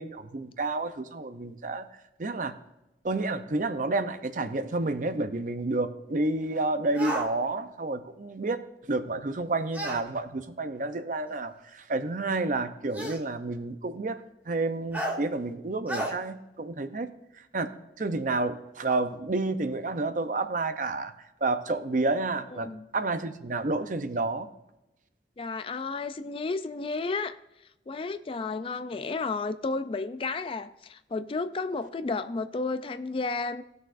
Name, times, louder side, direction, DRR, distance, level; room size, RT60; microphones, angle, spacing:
voice 1, 0.0-1.9 2.2-2.5 3.0-8.6 8.9-14.2 14.5-17.1 17.5-17.7 18.0-21.1 21.4-22.7 22.9-24.5, right 2 dB, 45° right, 9 dB, 0.6 m, -30 dB
sound 1, 6.9-7.3 9.7-10.0 11.3-11.4 12.9-13.2 14.9-15.2 15.9-16.1, right 1 dB, 10° right, 1.9 m, -31 dB
voice 2, 22.5-22.9 25.4-27.4 27.9-33.6, left 3 dB, 30° left, 12 dB, 0.3 m, -32 dB
18.0 x 6.4 x 2.5 m, 0.92 s
head